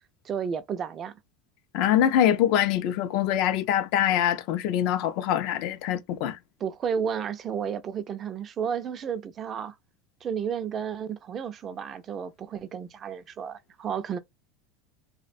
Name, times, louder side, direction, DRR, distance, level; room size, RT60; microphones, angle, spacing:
voice 1, 0.2-1.2 6.6-9.8 10.2-14.2, right 7 dB, 35° right, 0.3 m, -32 dB
voice 2, 1.7-6.4, left 11 dB, 60° left, 0.4 m, -24 dB
2.4 x 2.1 x 2.5 m
supercardioid pair, 115°, 0 cm